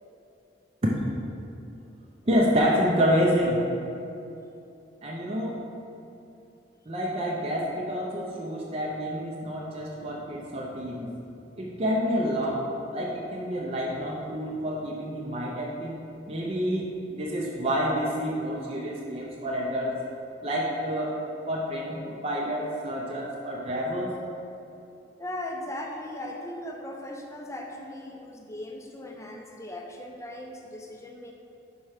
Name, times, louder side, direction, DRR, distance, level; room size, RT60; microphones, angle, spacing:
voice 1, 2.3-3.6 5.0-5.6 6.9-11.2 11.6-20.0 20.4-21.2 21.5-24.2, equal, 30° right, -3 dB, 0.5 m, -28 dB
voice 2, 25.2-31.3, left 1 dB, 15° left, 1 dB, 0.5 m, -38 dB
5.5 x 4.5 x 4.8 m, 2.7 s
head